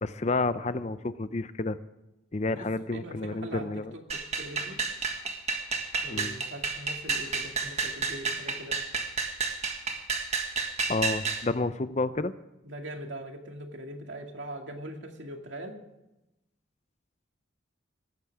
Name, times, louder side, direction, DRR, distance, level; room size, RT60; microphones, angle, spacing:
voice 1, 0.0-1.8 2.3-3.9 6.1-6.3 10.9-12.3, left 2 dB, 35° left, 13 dB, 0.6 m, -30 dB
voice 2, 2.5-3.7 4.1-4.8 6.0-8.8 12.6-15.8, right 1 dB, 70° right, 3 dB, 2.4 m, -41 dB
sound 1, 4.1-11.4, right 4 dB, 35° right, 1.7 m, -31 dB
19.0 x 15.0 x 3.6 m, 0.94 s
head